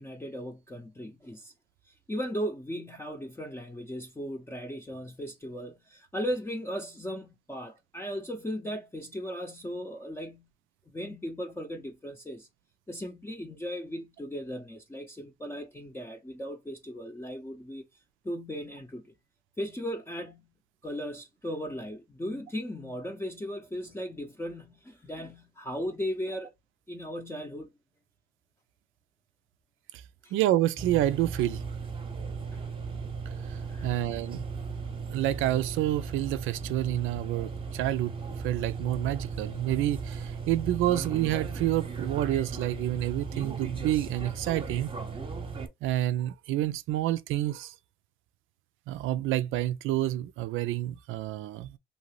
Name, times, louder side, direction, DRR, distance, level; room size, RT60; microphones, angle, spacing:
voice 1, 0.0-1.5 1.9-10.5 10.9-12.5 12.9-17.8 18.2-19.1 19.6-20.5 20.8-26.5 26.9-27.7 30.2-30.3 32.5-32.6 33.7-33.9, equal, 10° left, 0.6 m, -37 dB
voice 2, 30.3-31.6 33.5-34.5 35.1-44.9 45.8-47.7 48.9-51.8, right 14 dB, 90° right, 0.4 m, -28 dB
sound 1, 30.8-45.7, right 5 dB, 25° right, 0.8 m, -36 dB
2.8 x 2.7 x 3.0 m
cardioid pair, 90°, 20 cm